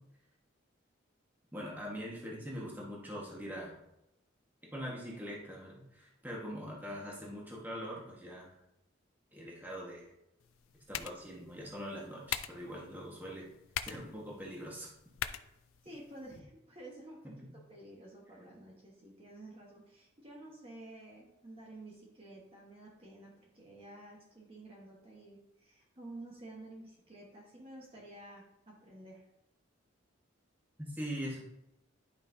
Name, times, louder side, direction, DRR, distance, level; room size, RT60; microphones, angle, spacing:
voice 1, 1.5-3.7 4.7-8.6 9.3-10.1 10.9-13.5 13.8-14.9 17.2-17.3 30.8-31.5, equal, 10° right, -4 dB, 1.5 m, -42 dB
sound 1, 10.4-16.4, left 10 dB, 85° left, 0.4 m, -44 dB
voice 2, 15.8-29.3, right 1 dB, 30° right, -3 dB, 1.3 m, -51 dB
10.5 x 5.6 x 2.8 m, 0.87 s
head